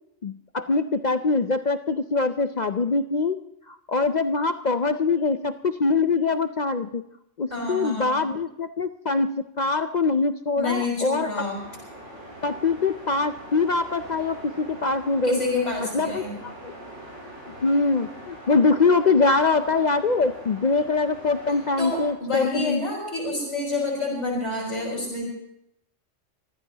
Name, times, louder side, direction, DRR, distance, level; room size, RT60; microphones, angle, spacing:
voice 1, 0.2-3.4 3.7-7.0 7.4-11.5 12.4-15.4 15.9-16.7 17.6-22.9, left 3 dB, 50° left, 9 dB, 0.6 m, -23 dB
voice 2, 7.5-8.2 10.6-11.6 15.2-16.3 21.8-25.3, left 3 dB, 75° left, -4 dB, 5.2 m, -28 dB
sound 1, 11.4-22.1, right 1 dB, 85° right, 7.9 m, -43 dB
25.0 x 15.0 x 2.9 m, 0.78 s
omnidirectional pair, 1.2 m